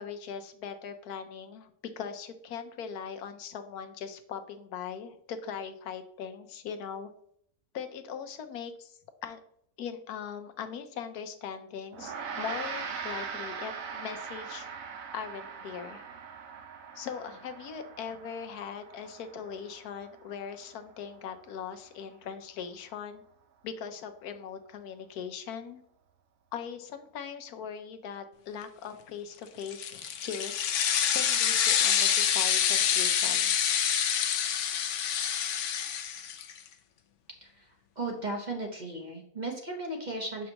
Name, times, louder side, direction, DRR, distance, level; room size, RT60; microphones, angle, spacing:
voice 1, 0.0-1.7 2.0-7.1 7.7-9.4 9.8-14.7 15.1-16.0 16.9-23.2 23.6-25.8 26.5-30.7 31.1-33.6, left 7 dB, 85° left, 8 dB, 1.2 m, -40 dB
Gong, 11.9-21.5, right 6 dB, 65° right, 1.1 m, -41 dB
sound 1, 29.6-36.6, left 8 dB, 65° left, 0.8 m, -27 dB
voice 2, 38.0-40.5, right 2 dB, 35° right, 1 dB, 0.9 m, -36 dB
6.4 x 5.3 x 2.9 m, 0.67 s
omnidirectional pair, 1.6 m